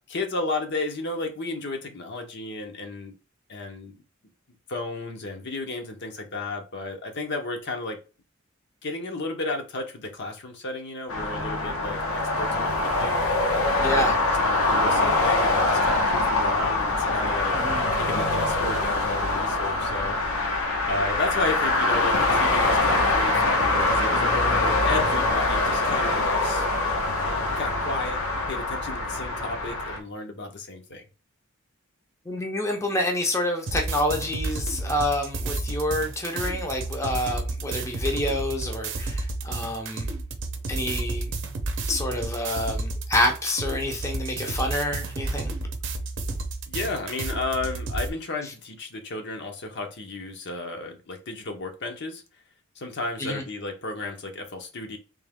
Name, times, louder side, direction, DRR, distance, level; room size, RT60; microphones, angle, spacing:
voice 1, 0.1-3.1 3.5-3.9 4.7-8.0 8.8-13.2 13.9-17.6 17.9-20.2 20.8-26.7 27.3-28.2 28.5-31.0 46.7-52.2 52.8-55.0, left 2 dB, 55° left, 0.8 m, -33 dB
sound 1, 11.1-30.0, left 2 dB, 90° left, 1.2 m, -24 dB
voice 2, 13.8-14.1 17.5-17.8 32.3-40.1 40.7-41.3 41.9-45.5 53.2-53.4, left 1 dB, 15° left, 0.6 m, -28 dB
sound 2, 33.7-48.1, right 2 dB, 60° right, 0.7 m, -31 dB
3.5 x 3.0 x 3.5 m
head